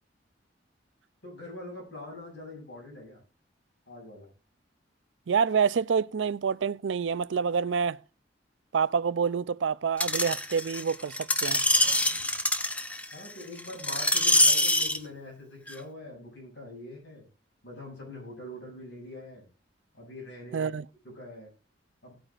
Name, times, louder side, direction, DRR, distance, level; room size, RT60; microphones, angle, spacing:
voice 1, 1.2-3.2 3.9-4.3 13.1-17.3 17.6-19.5 19.9-20.7 21.0-21.5 22.0-22.2, left 2 dB, 80° left, 7.7 m, -43 dB
voice 2, 5.3-8.0 8.7-11.6 20.5-20.8, right 6 dB, 90° right, 0.4 m, -27 dB
Screech, 10.0-15.0 15.7-15.8, left 1 dB, 10° left, 0.8 m, -25 dB
18.0 x 9.0 x 2.5 m
head